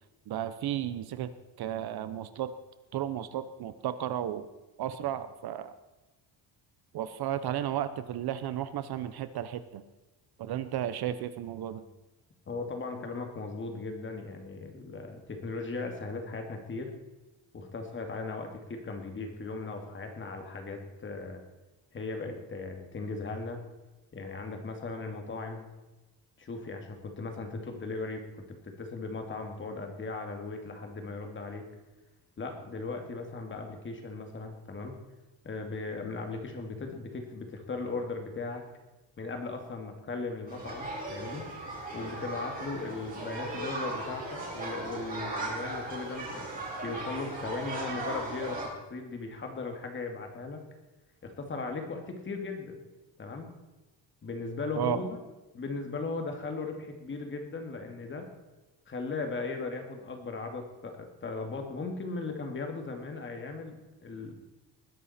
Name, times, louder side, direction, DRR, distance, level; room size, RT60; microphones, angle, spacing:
voice 1, 0.3-1.3 1.6-2.5 2.9-4.5 4.8-5.7 6.9-9.8 10.4-11.8 54.8-55.0, right 11 dB, 55° right, 12 dB, 0.9 m, -33 dB
voice 2, 12.5-16.9 17.5-21.4 21.9-23.6 24.1-25.7 26.4-28.2 28.6-31.6 32.4-34.9 35.4-38.6 39.2-41.4 41.9-44.2 44.5-46.5 46.8-48.6 48.9-50.6 51.2-52.8 53.2-53.5 54.2-55.2 55.5-58.3 58.9-63.8 64.0-64.3, left 3 dB, 25° left, 4 dB, 2.2 m, -37 dB
sound 1, 40.5-48.7, right 2 dB, 20° right, 4.5 m, -37 dB
20.0 x 11.0 x 4.3 m, 1.1 s
cardioid pair, 180°, 45 cm